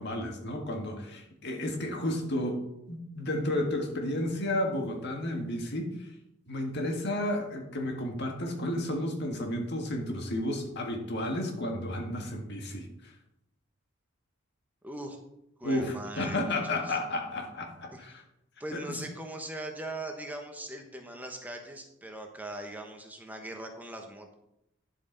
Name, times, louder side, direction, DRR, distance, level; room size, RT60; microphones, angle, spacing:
voice 1, 0.0-2.6 2.9-6.1 6.5-13.1 15.6-18.2 18.7-18.8, left 1 dB, 55° left, 2 dB, 1.8 m, -32 dB
voice 2, 14.8-15.2 15.6-17.0 17.9-18.0 18.6-24.3, right 1 dB, 10° right, 3 dB, 1.0 m, -40 dB
10.0 x 7.9 x 4.0 m, 0.84 s
head